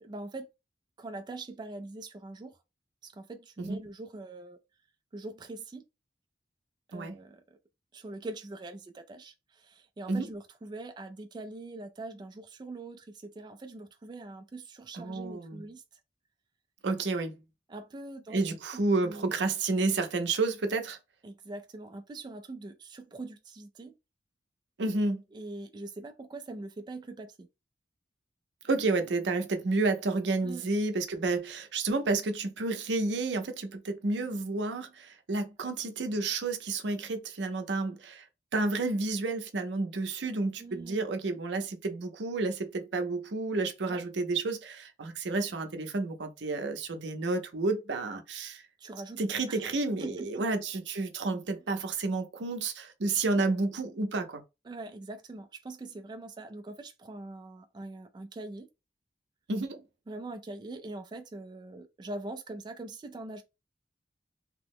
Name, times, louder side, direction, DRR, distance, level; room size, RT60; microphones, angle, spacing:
voice 1, 0.0-0.5 1.0-2.6 3.0-4.6 5.1-5.8 6.9-7.4 7.9-15.8 17.7-19.3 21.2-23.9 25.3-27.5 30.4-30.6 35.6-35.7 40.6-41.0 43.9-44.0 48.8-49.2 49.5-49.6 50.0-50.4 54.7-58.7 60.1-63.4, right 2 dB, 25° right, 0.3 m, -43 dB
voice 2, 14.9-15.6 16.8-17.4 18.3-21.0 24.8-25.2 28.6-38.2 38.5-48.6 49.2-54.4 59.5-59.8, right 3 dB, 80° right, 0.6 m, -30 dB
2.9 x 2.0 x 3.5 m
head